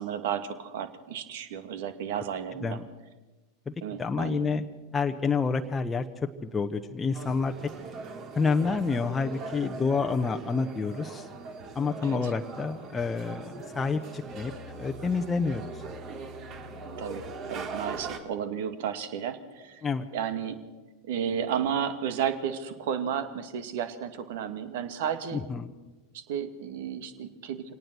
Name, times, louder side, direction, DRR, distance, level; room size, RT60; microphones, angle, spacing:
voice 1, 0.0-2.8 3.8-4.5 12.0-12.3 17.0-19.8 20.1-20.6 21.1-25.4 26.1-27.8, right 8 dB, 65° right, 10 dB, 2.0 m, -33 dB
voice 2, 4.0-4.6 4.9-7.5 8.3-11.3 11.7-15.8 19.8-20.0 25.3-25.7, left 4 dB, 15° left, 4 dB, 1.1 m, -28 dB
sound 1, 7.1-18.2, right 4 dB, 40° right, 3.0 m, -40 dB
25.0 x 18.5 x 6.2 m, 1.2 s
figure-of-eight pair, 85°, 0 cm